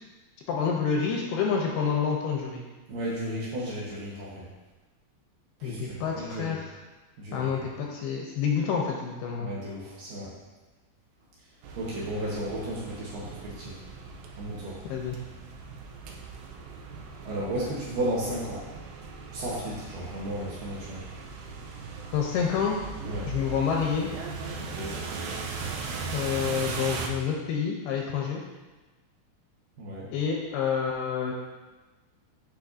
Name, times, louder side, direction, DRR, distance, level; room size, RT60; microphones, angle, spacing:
voice 1, 0.5-2.6 5.6-6.7 7.3-9.5 14.9-15.2 22.1-22.8 23.3-24.1 26.1-28.4 30.1-31.3, left 6 dB, 80° left, 0 dB, 2.4 m, -28 dB
voice 2, 2.9-4.5 5.6-6.6 7.2-7.6 9.4-10.3 11.8-13.8 14.4-14.8 17.2-18.6 19.3-21.0 23.0-23.3 24.6-24.9 29.8-30.1, right 1 dB, 65° right, -7 dB, 2.4 m, -34 dB
sound 1, 11.6-27.1, right 4 dB, 85° right, 2.1 m, -38 dB
8.4 x 5.5 x 2.6 m, 1.2 s
omnidirectional pair, 5.0 m